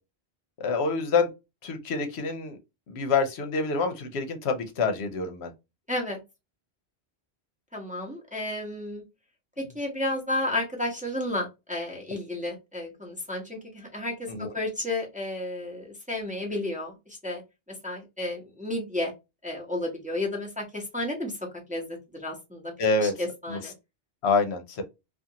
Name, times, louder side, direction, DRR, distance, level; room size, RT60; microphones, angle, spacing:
voice 1, 0.6-1.3 1.6-2.6 2.9-5.5 14.3-14.5 22.8-23.1 23.5-23.6 24.2-24.8, left 4 dB, 75° left, 0.9 m, -26 dB
voice 2, 5.9-6.2 7.7-9.0 9.7-17.4 17.8-19.1 19.4-21.4 21.7-22.7 23.0-23.7, left 1 dB, 10° right, 0.7 m, -32 dB
2.5 x 2.4 x 2.7 m
omnidirectional pair, 1.1 m